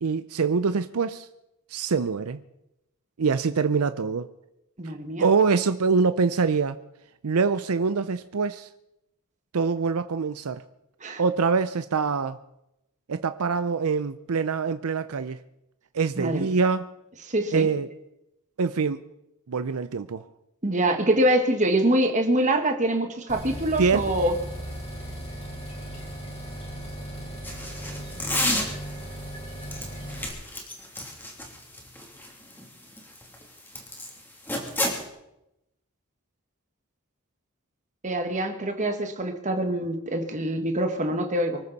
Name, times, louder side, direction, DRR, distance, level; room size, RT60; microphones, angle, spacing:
voice 1, 0.0-1.3 1.7-2.4 3.2-4.3 5.2-6.8 7.2-8.7 9.5-10.6 11.2-12.4 13.1-15.4 15.9-16.9 17.5-17.9 18.6-19.0 19.5-20.2 23.8-24.0, right 5 dB, 75° right, 0.6 m, -24 dB
voice 2, 4.8-5.3 11.0-11.2 16.2-16.5 17.3-17.7 20.6-24.4 38.0-41.6, right 1 dB, 35° right, 1.6 m, -24 dB
sound 1, 23.3-30.3, equal, 30° left, 5.0 m, -37 dB
sound 2, 27.4-29.0 29.6-34.1 34.5-35.0, left 1 dB, 10° left, 2.9 m, -30 dB
24.5 x 14.0 x 4.1 m
head